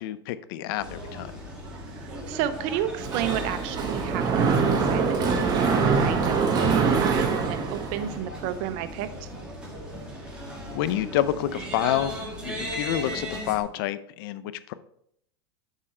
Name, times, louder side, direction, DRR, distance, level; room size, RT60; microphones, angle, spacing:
voice 1, 0.0-1.3 10.7-12.1 12.4-14.7, left 12 dB, 60° left, 15 dB, 0.5 m, -28 dB
sound 1, 0.8-13.6, equal, 5° right, 2.2 m, -37 dB
voice 2, 1.7-9.3, right 11 dB, 50° right, 12 dB, 0.6 m, -32 dB
Mechanisms, 3.0-8.2, right 5 dB, 30° right, 1.3 m, -24 dB
7.4 x 5.6 x 3.2 m, 0.70 s
supercardioid pair, 125°, 13 cm